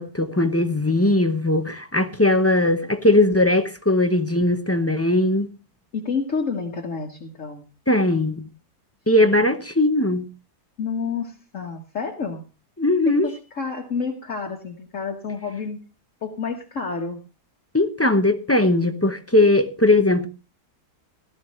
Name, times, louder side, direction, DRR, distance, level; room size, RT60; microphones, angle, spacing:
voice 1, 0.0-5.5 7.9-8.5 9.1-10.3 12.8-13.3 17.7-20.3, left 2 dB, 15° left, 0.4 m, -19 dB
voice 2, 5.9-7.7 9.2-9.5 10.8-12.4 13.1-15.8 16.2-17.2, left 5 dB, 55° left, 1.6 m, -29 dB
17.0 x 13.0 x 3.1 m
omnidirectional pair, 1.7 m